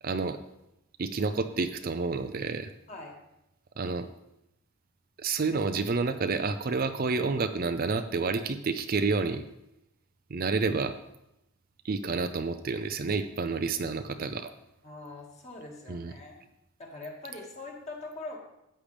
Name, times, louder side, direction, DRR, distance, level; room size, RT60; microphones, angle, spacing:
voice 1, 0.0-0.4 1.0-2.7 3.8-4.1 5.2-9.4 10.3-10.9 11.8-14.5 15.9-16.1, right 4 dB, 40° right, 9 dB, 0.5 m, -29 dB
voice 2, 14.8-16.3 16.8-18.4, left 2 dB, 30° left, -1 dB, 2.1 m, -42 dB
13.0 x 8.7 x 3.4 m, 0.86 s
head